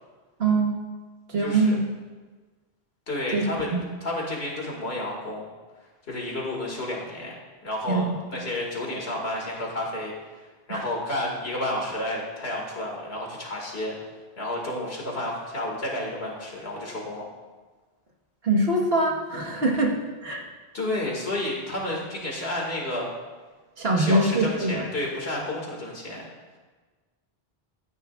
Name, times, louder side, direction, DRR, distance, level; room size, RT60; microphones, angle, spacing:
voice 1, 0.4-0.7 1.3-1.8 3.3-3.5 3.7-3.8 7.9-8.2 10.7-10.8 18.4-20.0 20.2-20.4 23.8-24.8, right 2 dB, 70° right, -1 dB, 1.7 m, -23 dB
voice 2, 1.4-1.7 3.1-3.7 4.0-5.5 6.1-7.4 7.6-10.1 10.7-13.9 14.4-17.2 20.7-23.1 23.9-26.2, left 1 dB, 75° left, -2 dB, 2.3 m, -31 dB
13.5 x 9.8 x 2.4 m, 1.3 s
omnidirectional pair, 1.1 m